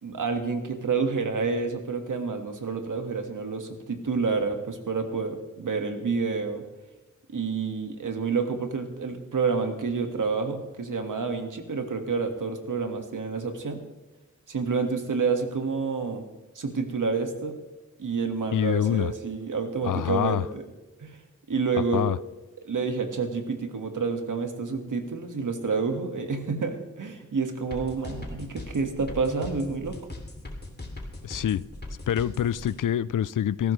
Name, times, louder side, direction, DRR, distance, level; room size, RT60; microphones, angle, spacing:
voice 1, 0.0-6.6 7.3-13.8 14.5-16.2 16.6-17.6 18.0-20.6 21.0-21.2 21.5-22.1 22.6-30.0, right 4 dB, 85° right, 1.8 m, -29 dB
voice 2, 18.5-19.1 19.8-20.5 21.9-22.2 31.2-31.7 32.1-33.7, left 10 dB, 90° left, 0.5 m, -26 dB
sound 1, 27.7-32.7, left 2 dB, 35° left, 2.8 m, -39 dB
18.0 x 15.0 x 3.2 m
wide cardioid pair, 90°, 31 cm